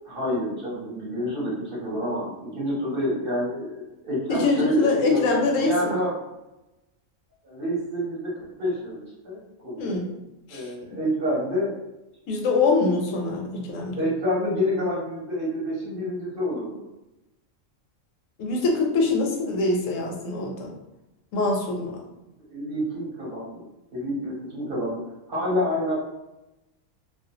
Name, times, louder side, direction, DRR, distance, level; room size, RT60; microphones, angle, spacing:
voice 1, 0.1-6.1 7.4-10.0 10.5-11.7 13.9-16.8 22.5-23.6 23.9-25.0 25.3-26.0, equal, 50° right, -6 dB, 0.8 m, -28 dB
voice 2, 4.3-6.0 9.8-10.1 10.5-10.7 12.3-14.0 18.4-20.7 21.3-22.0, left 3 dB, 80° left, 1 dB, 1.0 m, -24 dB
2.4 x 2.1 x 2.7 m, 0.96 s
omnidirectional pair, 1.3 m